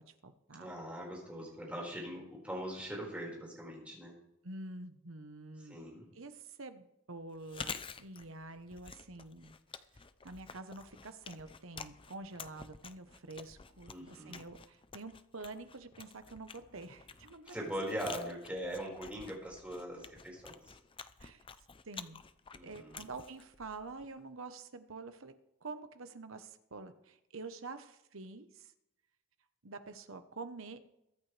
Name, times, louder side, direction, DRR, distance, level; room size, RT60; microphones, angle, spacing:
voice 1, 0.0-0.7 4.4-5.8 6.1-9.5 10.2-17.6 18.1-18.2 21.2-21.5 21.9-22.2 22.6-25.3 25.6-28.7 29.6-30.9, right 3 dB, 65° right, 9 dB, 1.1 m, -47 dB
voice 2, 0.6-4.1 5.6-6.1 13.9-14.4 17.4-20.6 22.5-23.0, equal, 5° right, -3 dB, 5.0 m, -41 dB
Chewing mastication, 7.3-24.2, left 5 dB, 25° left, 0.5 m, -50 dB
22.5 x 9.1 x 3.3 m, 0.86 s
head